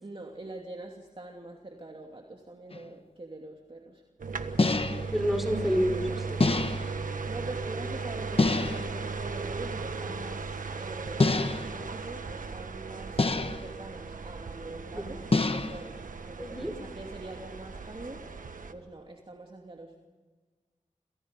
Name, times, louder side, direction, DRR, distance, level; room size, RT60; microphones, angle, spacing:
voice 1, 0.0-4.0 6.9-18.5 18.7-20.0, right 2 dB, 40° right, 1 dB, 2.8 m, -44 dB
sound 1, 2.7-2.8 4.6-5.2 6.4-7.0 8.4-9.0 11.2-11.8 13.2-13.7 15.3-15.9, left 3 dB, 45° left, 1.2 m, -26 dB
sound 2, 4.2-18.7, right 4 dB, 90° right, 1.5 m, -37 dB
voice 2, 5.1-6.4 14.9-15.3 16.4-16.8, equal, ahead, 5 dB, 4.2 m, -29 dB
29.5 x 28.0 x 5.4 m, 1.4 s
wide cardioid pair, 60°, 13 cm